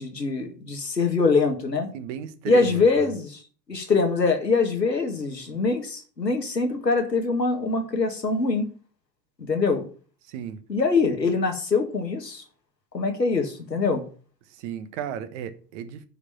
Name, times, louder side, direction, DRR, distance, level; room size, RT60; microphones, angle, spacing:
voice 1, 0.0-1.9 2.5-3.4 3.7-8.7 9.5-9.9 10.7-12.4 12.9-14.0, left 4 dB, 85° left, 2.0 m, -23 dB
voice 2, 1.9-3.1 10.3-10.6 14.6-16.0, right 9 dB, 45° right, 1.3 m, -34 dB
9.8 x 5.0 x 7.2 m
figure-of-eight pair, 85°, 49 cm